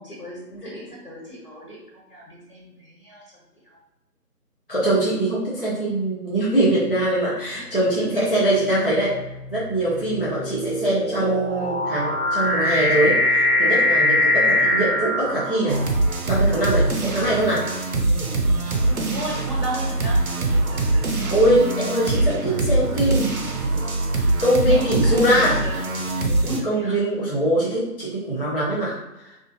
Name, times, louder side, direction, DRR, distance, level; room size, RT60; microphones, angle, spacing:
voice 1, 0.0-3.2 3.6-3.8 7.5-8.4 10.3-10.4 18.8-21.3 24.7-25.9 26.4-27.0, equal, 65° left, -6 dB, 1.3 m, -35 dB
voice 2, 4.7-9.2 9.5-15.8 16.2-17.7 21.3-23.4 24.1-25.5 26.6-29.4, right 1 dB, 40° left, -8 dB, 0.5 m, -22 dB
sound 1, 6.7-7.1 7.9-16.1, left 1 dB, 35° right, 0.9 m, -23 dB
sound 2, 15.7-26.6, right 2 dB, 65° right, 0.6 m, -23 dB
2.6 x 2.5 x 2.5 m, 0.92 s
figure-of-eight pair, 165°, 47 cm